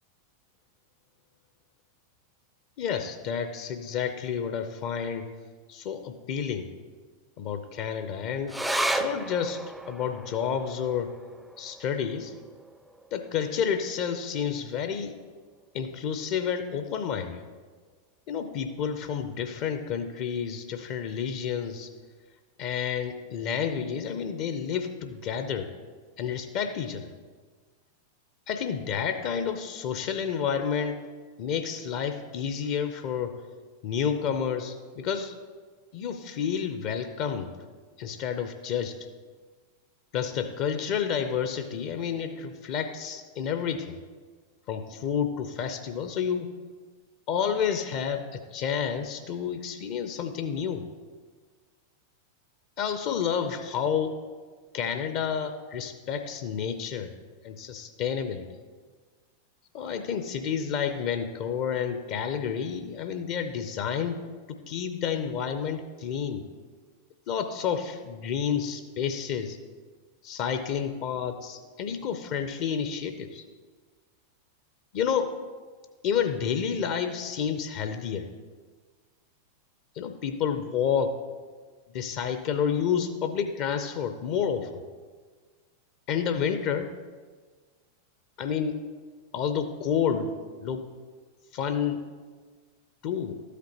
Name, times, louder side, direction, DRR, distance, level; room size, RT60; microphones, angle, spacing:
voice 1, 2.8-5.3 5.7-6.7 7.4-8.6 8.9-11.2 11.6-12.3 13.1-15.1 15.7-17.4 18.3-21.9 22.6-25.7 26.2-27.1 28.5-31.1 31.4-33.4 33.8-35.3 35.9-37.5 38.0-39.0 40.1-44.0 44.7-46.5 47.3-50.8 52.8-54.2 54.7-57.1 57.4-58.4 59.7-64.2 64.5-66.4 67.3-69.6 70.2-73.4 74.9-75.4 76.0-78.3 80.0-81.2 81.9-84.8 86.1-86.9 88.4-88.8 89.3-90.3 90.6-90.8 91.5-92.0 93.0-93.4, left 7 dB, 45° left, 9 dB, 0.6 m, -30 dB
sound 1, 8.5-15.3 15.6-15.7 16.0-16.7 17.2-17.3, right 1 dB, 5° right, 0.4 m, -35 dB
13.0 x 8.2 x 2.9 m, 1.5 s
figure-of-eight pair, 90°, 0 cm